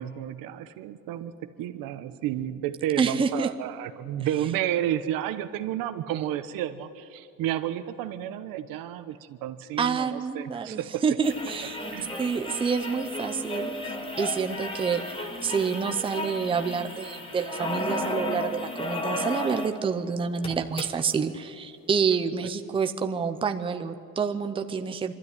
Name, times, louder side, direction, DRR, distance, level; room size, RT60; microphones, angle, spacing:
voice 1, 0.0-11.0 11.9-12.1, right 11 dB, 80° right, 10 dB, 1.1 m, -31 dB
voice 2, 3.0-3.5 9.8-11.8 12.2-13.7 14.2-25.1, right 5 dB, 15° right, 6 dB, 0.7 m, -28 dB
sound 1, 11.2-19.8 20.1-20.2 20.4-21.1 22.1-22.2, left 1 dB, 15° left, 1.4 m, -34 dB
24.5 x 13.0 x 9.9 m, 2.6 s
cardioid pair, 165°, 33 cm